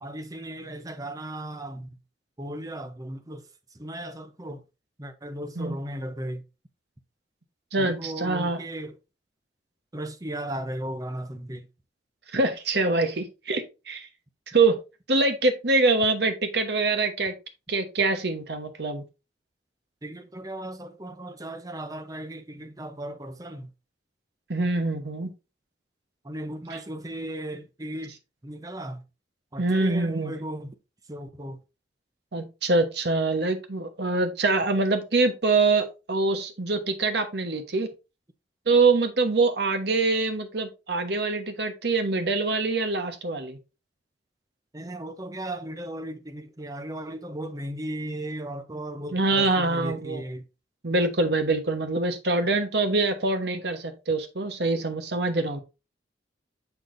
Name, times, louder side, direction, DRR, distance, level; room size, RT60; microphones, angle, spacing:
voice 1, 0.0-1.9 2.4-4.6 5.0-6.4 7.8-9.0 9.9-11.7 20.0-23.7 26.2-28.2 28.4-29.0 29.5-30.8 31.1-31.6 44.7-50.5, right 1 dB, 20° right, 0.7 m, -36 dB
voice 2, 7.7-8.6 12.3-14.1 14.5-14.8 15.1-17.3 17.7-19.0 24.5-25.3 29.6-30.3 32.3-37.9 38.7-43.6 49.1-50.2 50.8-55.6, right 3 dB, 65° right, 1.1 m, -24 dB
6.9 x 6.1 x 2.6 m
head